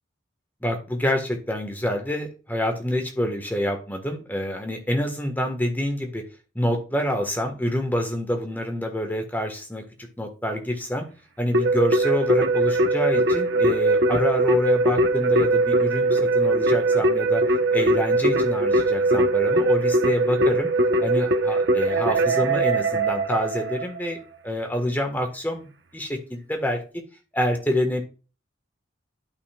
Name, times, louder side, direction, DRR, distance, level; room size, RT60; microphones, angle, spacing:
voice 1, 0.6-6.2 6.5-11.0 11.4-17.4 17.7-20.7 21.0-24.2 24.4-26.8 27.3-28.0, left 1 dB, 10° left, 4 dB, 1.4 m, -27 dB
Keyboard (musical), 11.5-24.0, right 2 dB, 60° right, 1.0 m, -21 dB
12.0 x 5.5 x 2.3 m, 0.34 s
head